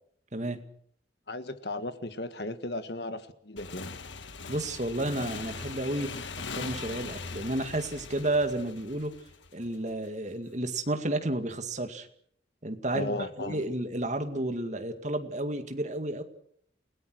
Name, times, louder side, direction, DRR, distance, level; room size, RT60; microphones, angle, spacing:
voice 1, 0.3-0.6 4.5-6.2 6.5-9.1 9.5-12.1 12.6-16.2, right 1 dB, 40° right, 7 dB, 2.2 m, -31 dB
voice 2, 1.3-4.0 12.9-13.6, left 2 dB, 60° left, 10 dB, 1.7 m, -36 dB
Motorcycle / Engine, 3.6-9.9, left 4 dB, 85° left, 1.5 m, -40 dB
29.5 x 18.5 x 6.4 m, 0.63 s
head